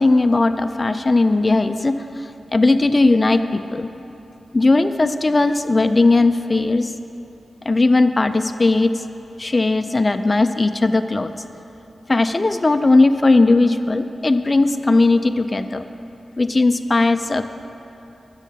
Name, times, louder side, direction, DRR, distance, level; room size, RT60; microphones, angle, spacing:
voice 1, 0.0-2.0 2.5-3.9 4.5-6.9 7.7-9.0 9.4-11.3 12.1-15.9 16.4-17.5, left 2 dB, 25° left, 9 dB, 0.4 m, -17 dB
11.5 x 7.2 x 5.7 m, 2.9 s
wide cardioid pair, 110°, 0 cm